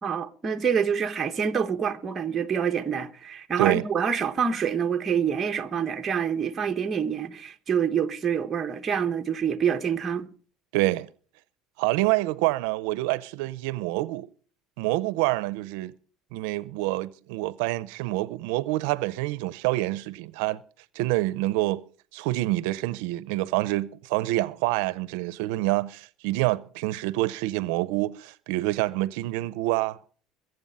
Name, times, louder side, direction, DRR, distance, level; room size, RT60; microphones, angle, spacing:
voice 1, 0.0-10.3, right 7 dB, 20° right, 1.0 m, -26 dB
voice 2, 10.7-11.1 11.8-14.3 14.8-15.9 16.3-20.6 20.9-21.8 22.1-30.0, right 18 dB, 80° right, 0.6 m, -27 dB
22.0 x 8.0 x 5.4 m
cardioid pair, 160°, 0 cm